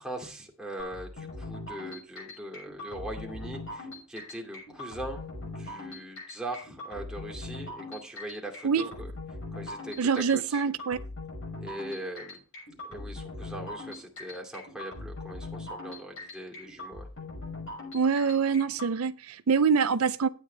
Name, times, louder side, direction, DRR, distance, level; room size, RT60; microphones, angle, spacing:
voice 1, 0.0-9.1 9.5-10.6 11.6-12.4 12.8-17.1, right 1 dB, 5° right, 2.4 m, -41 dB
sound 1, 0.8-18.9, left 2 dB, 65° left, 6.4 m, -41 dB
voice 2, 10.0-11.0 17.9-20.3, right 6 dB, 75° right, 0.5 m, -25 dB
12.0 x 9.3 x 3.3 m
head